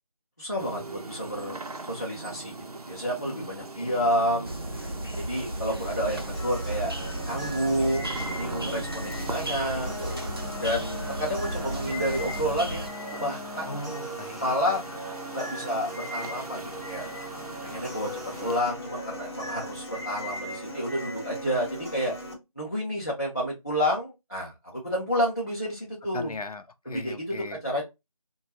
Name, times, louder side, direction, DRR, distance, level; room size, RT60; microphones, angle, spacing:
voice 1, 0.4-4.5 5.1-6.9 7.2-9.9 10.6-12.9 13.2-13.8 14.4-14.8 15.3-17.0 17.6-22.1 22.6-26.4 26.8-27.4 27.6-27.8, equal, 30° left, 0.6 m, -30 dB
sound 1, 0.6-18.6, right 3 dB, 80° right, 0.7 m, -41 dB
sound 2, 4.4-12.9, right 1 dB, 40° right, 0.4 m, -35 dB
sound 3, 6.3-22.3, equal, 45° left, 1.0 m, -38 dB
voice 2, 13.7-14.6 26.1-27.6, left 2 dB, 80° left, 0.6 m, -38 dB
3.1 x 2.2 x 2.9 m
figure-of-eight pair, 175°, 19 cm